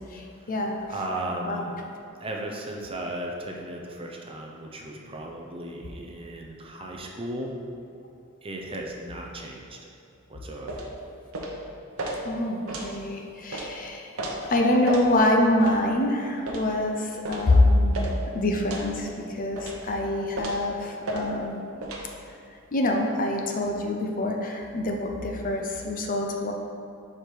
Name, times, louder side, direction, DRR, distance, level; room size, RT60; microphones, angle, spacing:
voice 1, 0.1-0.8 1.4-1.7 12.2-14.1 14.5-21.6 22.7-26.5, left 1 dB, 40° left, 2 dB, 0.6 m, -25 dB
voice 2, 0.9-1.8 2.2-7.6 8.4-9.8 10.3-10.9, right 1 dB, 25° right, 0 dB, 0.6 m, -35 dB
sound 1, 10.7-10.9 11.3-11.6 12.0-12.2 12.7-12.9 13.5-13.7 14.2-14.3 14.9-15.1 15.6-15.7 16.4-16.7 17.2-17.5 17.9-18.1 18.7-18.9 19.6-19.8 20.3-20.6 21.0-21.2 21.8-22.0, right 2 dB, 75° right, 0.8 m, -33 dB
5.1 x 4.7 x 4.5 m, 2.7 s
head